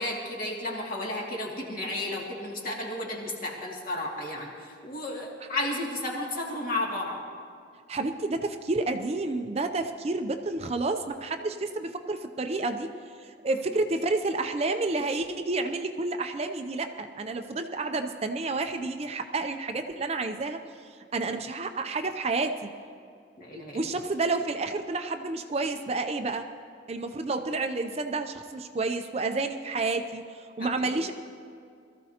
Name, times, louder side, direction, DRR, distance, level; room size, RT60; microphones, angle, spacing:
voice 1, 0.0-7.2 23.4-23.9 30.6-31.0, left 1 dB, 45° left, -2 dB, 2.3 m, -33 dB
voice 2, 7.9-12.9 13.2-20.6 21.1-22.7 23.7-26.5 26.9-31.1, right 3 dB, 35° right, 7 dB, 0.5 m, -30 dB
22.0 x 14.0 x 2.9 m, 2.3 s
head